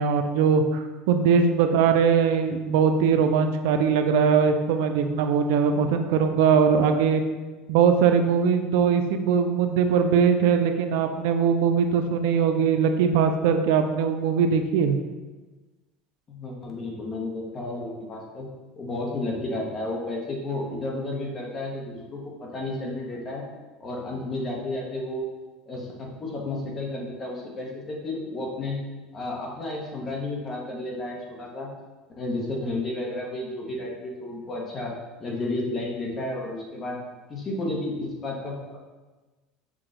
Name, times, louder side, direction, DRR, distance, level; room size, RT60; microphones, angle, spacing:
voice 1, 0.0-7.2 7.7-15.0, right 6 dB, 75° right, 7 dB, 0.4 m, -21 dB
voice 2, 16.3-18.5 18.8-23.4 23.8-25.2 25.7-28.8 29.1-31.7 32.2-34.9 35.2-37.0 37.3-38.8, left 2 dB, 25° left, -1 dB, 0.8 m, -32 dB
6.0 x 2.3 x 3.7 m, 1.2 s
cardioid pair, 160°, 0 cm